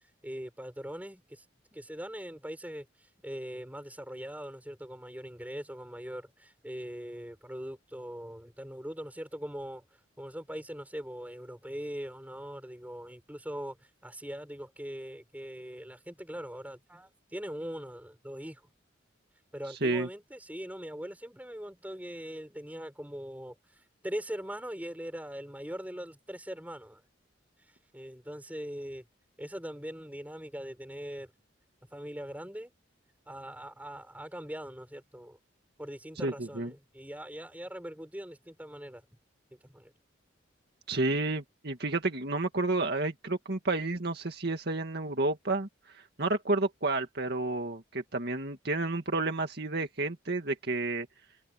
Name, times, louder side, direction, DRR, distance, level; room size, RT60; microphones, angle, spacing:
voice 1, 0.2-1.4 1.7-9.8 10.2-18.6 19.5-23.6 24.0-27.0 27.9-29.0 29.4-31.3 31.9-32.7 33.3-35.4 35.8-39.0 39.5-39.9, equal, 10° right, 6.4 m, -41 dB
voice 2, 36.2-36.7 40.9-45.7 45.9-51.1, right 2 dB, 55° right, 2.1 m, -30 dB
head